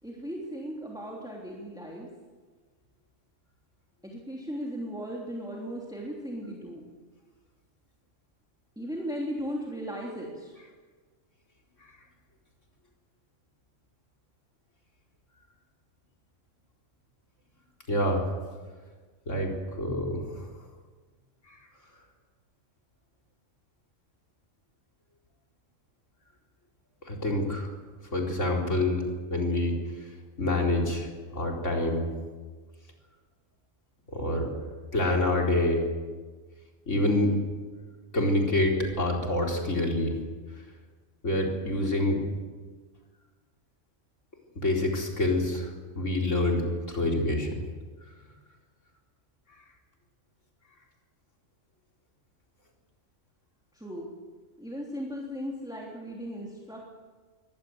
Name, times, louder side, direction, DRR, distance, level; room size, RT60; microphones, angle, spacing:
voice 1, 0.0-2.1 4.0-6.8 8.8-10.6 53.7-54.1 54.6-56.8, equal, 5° right, -3 dB, 3.2 m, -37 dB
voice 2, 17.9-18.2 19.3-20.5 21.5-21.6 27.0-27.7 28.1-30.1 30.4-32.1 34.1-34.5 34.9-35.8 36.9-37.4 38.1-40.2 41.2-42.2 44.6-47.6, left 1 dB, 70° left, 0 dB, 4.6 m, -27 dB
23.5 x 18.5 x 8.0 m, 1.4 s
omnidirectional pair, 1.3 m